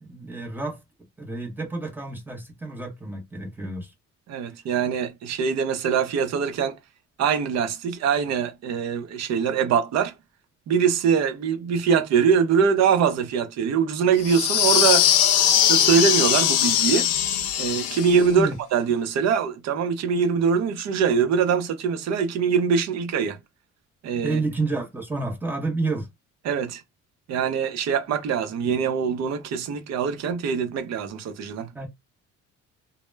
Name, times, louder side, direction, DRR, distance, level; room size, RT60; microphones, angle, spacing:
voice 1, 0.0-0.8 1.2-3.9 18.4-18.5 24.2-26.1 31.7-31.9, right 3 dB, 5° right, 0.7 m, -29 dB
voice 2, 4.3-6.8 7.2-10.1 10.7-15.1 15.4-17.1 17.6-23.4 24.0-24.4 26.5-26.8 27.3-31.7, right 6 dB, 60° right, 0.6 m, -23 dB
sound 1, 14.2-18.3, left 10 dB, 55° left, 0.4 m, -20 dB
2.1 x 2.0 x 3.2 m
cardioid pair, 150°, 29 cm